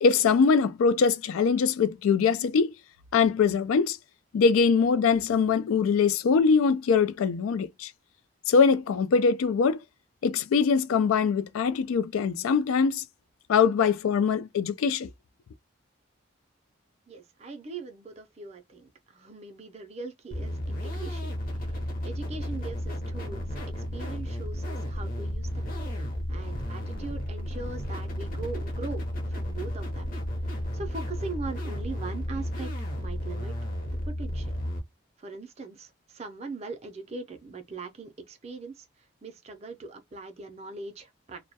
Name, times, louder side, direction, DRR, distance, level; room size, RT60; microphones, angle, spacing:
voice 1, 0.0-2.7 3.1-4.0 4.3-7.9 8.5-9.8 10.2-13.0 13.5-15.1, left 5 dB, 85° left, 0.3 m, -23 dB
voice 2, 17.1-23.4 23.8-29.0 29.3-30.1 30.4-33.5 33.9-34.5 35.2-41.4, right 3 dB, 30° right, 0.4 m, -41 dB
sound 1, 20.3-34.8, equal, 40° left, 0.7 m, -33 dB
2.2 x 2.1 x 2.7 m
head